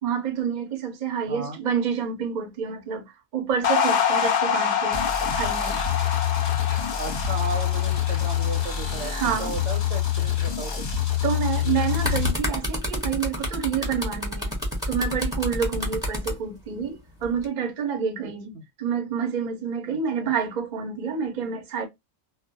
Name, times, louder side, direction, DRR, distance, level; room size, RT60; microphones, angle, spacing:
voice 1, 0.0-5.0 5.3-5.7 9.0-9.5 11.2-14.5 14.9-21.9, right 7 dB, 50° right, 0.6 m, -28 dB
voice 2, 1.3-1.6 7.0-10.9 18.2-18.3 18.5-18.6 19.9-20.3, right 3 dB, 75° right, 1.0 m, -35 dB
sound 1, 3.6-10.1, left 7 dB, 60° left, 0.4 m, -27 dB
sound 2, 4.9-12.3, left 10 dB, 45° left, 0.8 m, -26 dB
sound 3, 11.9-16.3 17.2-17.4, equal, 5° right, 0.7 m, -29 dB
2.3 x 2.0 x 2.6 m
omnidirectional pair, 1.3 m